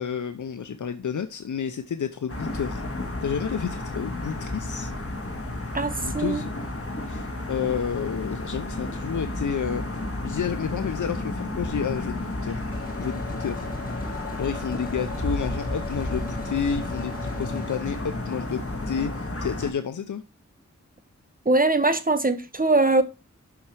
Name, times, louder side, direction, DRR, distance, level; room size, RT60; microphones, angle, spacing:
voice 1, 0.0-2.8 3.2-4.9 6.0-6.5 7.1-10.0 10.2-12.6 13.0-13.7 13.9-20.2, left 7 dB, 90° left, 0.5 m, -30 dB
sound 1, 2.3-19.7, left 2 dB, 50° left, 1.8 m, -32 dB
voice 2, 5.7-6.4 21.5-23.0, right 2 dB, 30° right, 1.0 m, -21 dB
sound 2, 12.7-17.8, left 4 dB, 30° left, 1.5 m, -41 dB
7.0 x 5.6 x 3.2 m
wide cardioid pair, 55°, 30 cm